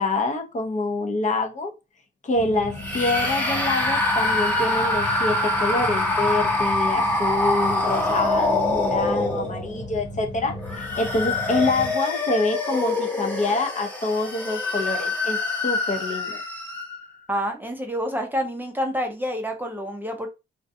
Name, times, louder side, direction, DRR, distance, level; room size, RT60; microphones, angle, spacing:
voice 1, 0.0-1.7 2.2-16.4, left 2 dB, 40° left, 0.7 m, -26 dB
sound 1, 2.3-11.9, left 1 dB, 55° left, 1.3 m, -36 dB
sound 2, 2.8-9.8 10.5-17.0, left 2 dB, 10° left, 0.9 m, -25 dB
voice 2, 17.3-20.3, equal, 10° right, 0.6 m, -28 dB
2.5 x 2.2 x 2.6 m
cardioid pair, 90°, 20 cm